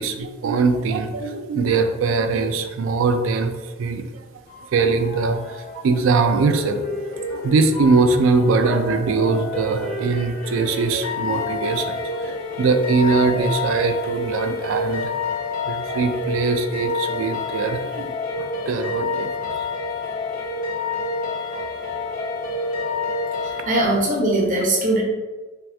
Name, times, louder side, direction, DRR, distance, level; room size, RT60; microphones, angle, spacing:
voice 1, 0.0-3.5 3.8-4.0 4.7-15.1 15.7-19.3, right 4 dB, 70° right, 8 dB, 0.3 m, -21 dB
sound 1, 4.5-23.8, left 3 dB, 40° left, 0.4 m, -28 dB
voice 2, 23.4-25.0, right 1 dB, 40° right, -1 dB, 0.7 m, -20 dB
2.9 x 2.3 x 3.3 m, 1.2 s
head